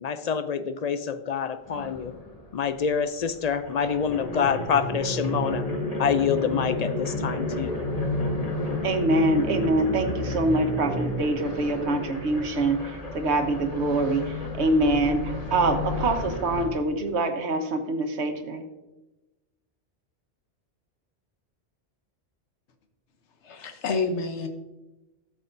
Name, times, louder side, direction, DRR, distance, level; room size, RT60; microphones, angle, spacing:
voice 1, 0.0-2.1 2.5-5.7 6.0-7.8, left 7 dB, 55° left, 11 dB, 0.4 m, -26 dB
sound 1, 1.7-2.9 3.2-16.7, left 2 dB, 35° left, 1.4 m, -31 dB
voice 2, 8.8-14.2 14.6-18.6, right 2 dB, 75° right, 6 dB, 1.3 m, -25 dB
voice 3, 23.4-24.5, left 4 dB, 80° left, 6 dB, 1.2 m, -28 dB
13.0 x 7.6 x 2.6 m, 1.0 s
omnidirectional pair, 1.2 m